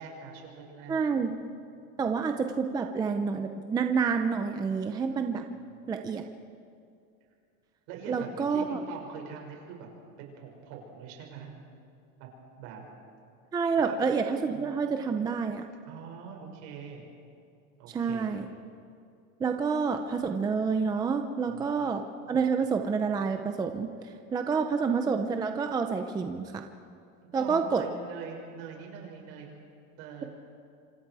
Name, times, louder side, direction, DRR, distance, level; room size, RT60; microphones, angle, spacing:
voice 1, 0.0-1.2 7.9-9.9 10.2-11.5 12.2-12.3 12.6-12.8 13.8-14.1 14.5-15.1 15.9-17.0 17.8-18.4 21.5-21.9 27.2-29.5 30.0-30.3, right 6 dB, 55° right, 0 dB, 6.2 m, -44 dB
voice 2, 0.9-1.3 2.0-5.4 5.9-6.2 8.1-8.8 13.5-15.6 17.9-18.4 19.4-26.6 27.3-27.8, right 5 dB, 10° right, 5 dB, 0.5 m, -28 dB
26.5 x 26.5 x 4.8 m, 2.5 s
supercardioid pair, 170°, 41 cm